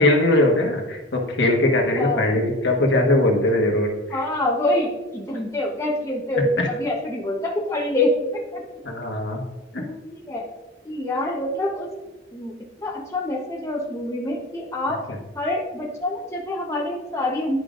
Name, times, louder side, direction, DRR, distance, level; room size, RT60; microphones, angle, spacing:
voice 1, 0.0-4.2 6.6-6.7 8.8-9.4 9.7-9.8 15.1-15.2, left 1 dB, 70° left, 0 dB, 1.3 m, -20 dB
voice 2, 2.0-2.3 4.1-8.6 9.8-10.5 10.8-11.9 12.3-15.0 15.3-17.6, left 1 dB, 15° left, -3 dB, 0.9 m, -26 dB
11.0 x 5.1 x 2.5 m, 1.1 s
head